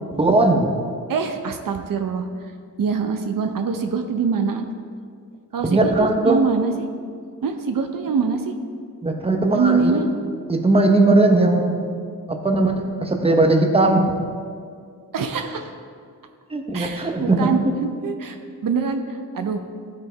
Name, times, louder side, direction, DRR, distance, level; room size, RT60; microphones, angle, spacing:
voice 1, 0.1-0.7 5.6-6.4 9.0-10.1 10.5-11.9 12.3-14.2 16.5-17.5, right 2 dB, 15° right, 3 dB, 1.0 m, -18 dB
voice 2, 1.1-2.3 2.8-4.6 5.5-6.9 7.4-8.5 9.5-10.1 15.1-15.7 16.7-19.6, right 5 dB, 75° right, 5 dB, 0.7 m, -24 dB
13.5 x 5.3 x 4.5 m, 2.2 s
wide cardioid pair, 90°, 33 cm